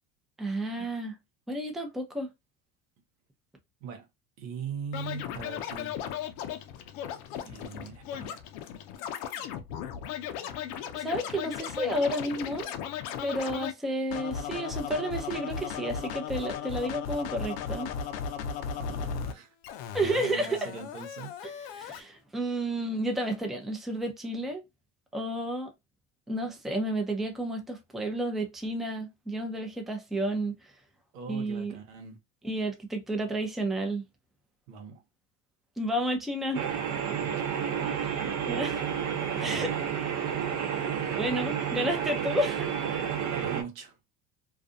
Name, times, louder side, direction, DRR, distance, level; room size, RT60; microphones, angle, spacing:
voice 1, 0.4-1.2 1.5-2.3 10.9-12.7 13.2-17.9 19.9-20.7 21.8-24.6 25.1-25.7 26.3-30.6 31.3-31.7 32.4-34.0 35.8-36.6 38.5-38.8 39.4-39.7 41.2-42.7, right 1 dB, ahead, 0.5 m, -31 dB
voice 2, 4.4-6.0 7.4-8.4 18.8-19.5 20.0-21.3 31.1-32.2 34.7-35.0 37.1-37.5 38.0-38.4 39.4-39.7 43.3-44.0, right 5 dB, 85° right, 0.9 m, -41 dB
Scratching (performance technique), 4.9-13.7 14.1-19.3 19.6-22.0, left 7 dB, 65° left, 0.6 m, -36 dB
sound 1, 36.5-43.6, right 8 dB, 50° right, 0.8 m, -30 dB
2.5 x 2.3 x 2.6 m
hypercardioid pair, 85°, 39 cm